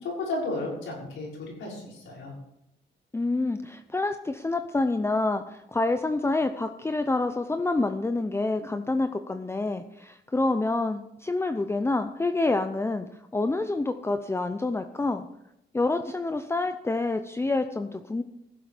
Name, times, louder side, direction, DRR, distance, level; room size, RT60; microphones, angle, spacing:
voice 1, 0.0-2.3, left 2 dB, 80° left, -3 dB, 5.9 m, -33 dB
voice 2, 3.1-13.1 13.3-15.3 15.7-18.2, left 2 dB, 15° left, 7 dB, 0.6 m, -27 dB
15.5 x 7.8 x 5.1 m, 0.82 s
cardioid pair, 90°, 20 cm